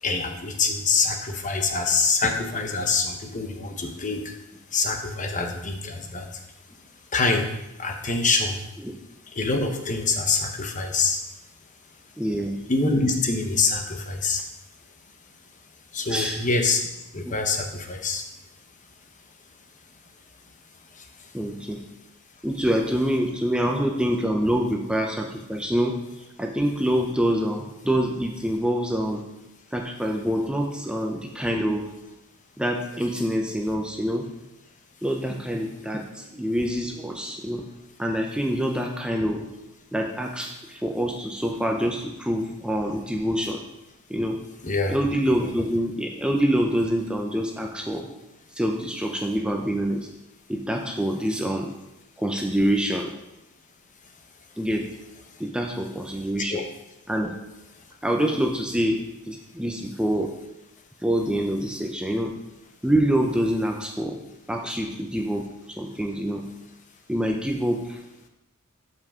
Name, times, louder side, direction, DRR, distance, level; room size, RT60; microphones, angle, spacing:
voice 1, 0.0-4.3 4.7-6.4 7.1-7.5 7.8-8.6 9.3-11.2 12.7-14.4 15.9-16.8 17.1-18.2 20.9-21.3 44.6-45.0 56.5-56.6, left 4 dB, 35° left, 4 dB, 1.0 m, -25 dB
voice 2, 12.2-12.6 16.1-16.4 17.2-17.3 21.3-21.8 22.4-26.0 26.4-29.2 29.7-31.9 32.6-34.3 35.0-37.6 38.0-39.5 39.9-43.6 44.1-44.4 44.9-48.1 48.5-50.1 50.5-51.7 52.2-53.1 54.6-55.0 55.4-56.7 57.1-57.3 58.0-60.4 61.0-62.4 62.8-64.2 64.5-65.5 65.8-66.5 67.1-68.0, equal, 5° right, 1 dB, 0.6 m, -26 dB
12.5 x 5.6 x 3.7 m, 0.92 s
head